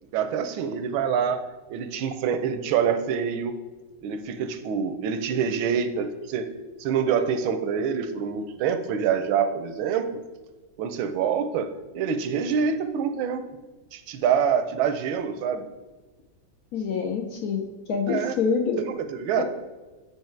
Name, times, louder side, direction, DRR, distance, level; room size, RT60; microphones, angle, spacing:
voice 1, 0.1-3.5 4.0-6.5 6.8-10.1 10.8-13.4 13.9-15.7 18.1-18.4 18.8-19.4, right 7 dB, 85° right, 9 dB, 1.4 m, -26 dB
voice 2, 16.7-18.8 19.3-19.4, left 5 dB, 70° left, 3 dB, 0.9 m, -26 dB
9.0 x 3.0 x 4.4 m, 1.3 s
omnidirectional pair, 2.1 m